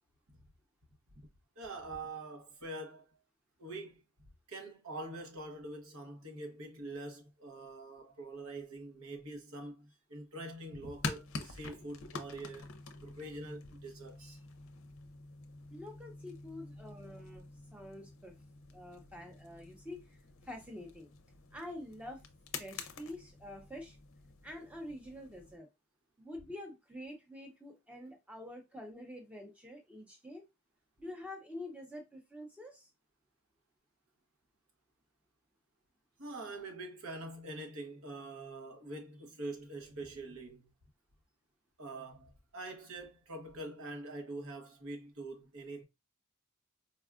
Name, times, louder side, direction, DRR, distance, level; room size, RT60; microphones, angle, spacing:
voice 1, 1.6-3.2 3.6-4.0 4.5-12.7 13.0-14.4 36.2-40.7 41.8-45.8, right 2 dB, 70° right, 0.9 m, -45 dB
sound 1, 10.8-25.6, left 4 dB, 60° left, 0.5 m, -47 dB
voice 2, 15.7-18.3 18.7-20.2 20.4-21.1 21.5-22.2 22.6-24.0 24.4-25.7 26.2-30.4 31.0-32.9, left 1 dB, 5° right, 0.6 m, -47 dB
4.3 x 2.3 x 2.3 m
head